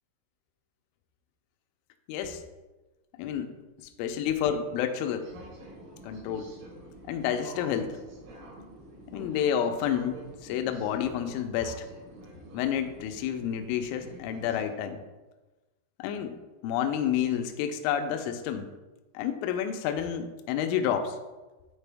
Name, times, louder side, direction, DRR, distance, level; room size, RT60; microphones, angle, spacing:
voice 1, 2.1-2.4 3.2-3.5 3.8-5.3 6.0-6.5 7.1-8.0 9.1-11.9 12.5-15.0 16.0-16.4 16.6-18.7 19.1-21.2, left 9 dB, 85° left, 7 dB, 3.0 m, -29 dB
sound 1, 5.2-14.6, right 1 dB, 90° right, 4.9 m, -48 dB
9.7 x 4.6 x 3.4 m, 1.1 s
omnidirectional pair, 5.8 m